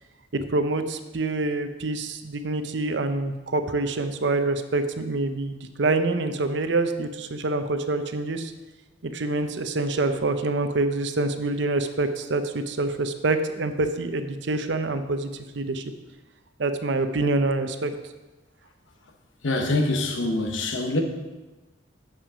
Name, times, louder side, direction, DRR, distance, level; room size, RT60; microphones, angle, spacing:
voice 1, 0.3-8.5 9.0-15.8 16.6-17.9, right 2 dB, 65° right, 9 dB, 0.7 m, -26 dB
voice 2, 19.4-21.0, left 2 dB, 75° left, 4 dB, 1.2 m, -24 dB
8.8 x 7.1 x 5.0 m, 1.2 s
head